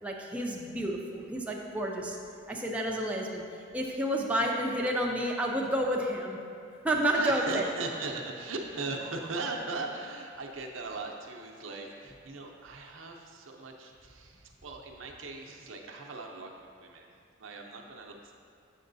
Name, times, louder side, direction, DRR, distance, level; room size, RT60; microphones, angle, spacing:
voice 1, 0.0-2.2 2.5-3.4 3.7-6.4 6.8-7.6, right 1 dB, 5° right, -2 dB, 0.5 m, -30 dB
voice 2, 7.1-16.5 16.8-18.3, right 3 dB, 90° right, 1 dB, 0.7 m, -38 dB
6.9 x 6.4 x 2.6 m, 2.3 s
head